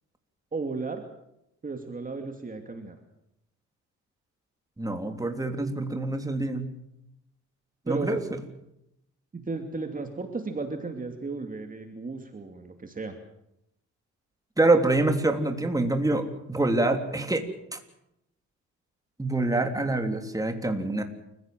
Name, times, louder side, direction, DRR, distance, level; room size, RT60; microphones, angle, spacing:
voice 1, 0.5-1.0 1.6-3.0 7.9-8.2 9.3-13.2, right 3 dB, 25° right, 4 dB, 2.7 m, -34 dB
voice 2, 4.8-6.7 7.9-8.2 14.6-17.4 17.7-17.8 19.2-21.0, right 2 dB, 10° right, 5 dB, 3.3 m, -25 dB
29.0 x 16.0 x 7.7 m, 0.82 s
cardioid pair, 90°, 30 cm